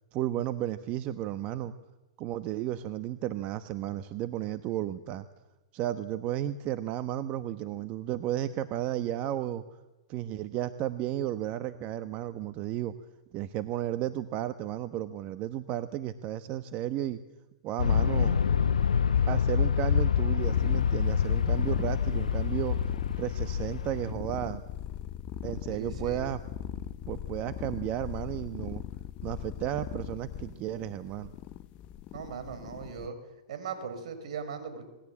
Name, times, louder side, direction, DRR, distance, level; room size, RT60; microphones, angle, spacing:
voice 1, 0.1-1.7 2.2-5.3 5.7-9.6 10.1-12.9 13.3-17.2 17.6-18.4 19.3-22.8 23.2-24.6 25.4-26.4 27.1-28.8 29.2-31.3, right 12 dB, 35° right, 11 dB, 1.2 m, -33 dB
Aircraft, 17.8-24.1, left 7 dB, 90° left, 1.1 m, -26 dB
sound 1, 20.4-33.1, left 11 dB, 35° left, 0.8 m, -40 dB
voice 2, 25.7-26.2 32.1-33.1 33.5-34.9, right 6 dB, 70° right, 8 dB, 6.0 m, -39 dB
26.5 x 20.5 x 8.7 m, 1.1 s
hypercardioid pair, 125°, 4 cm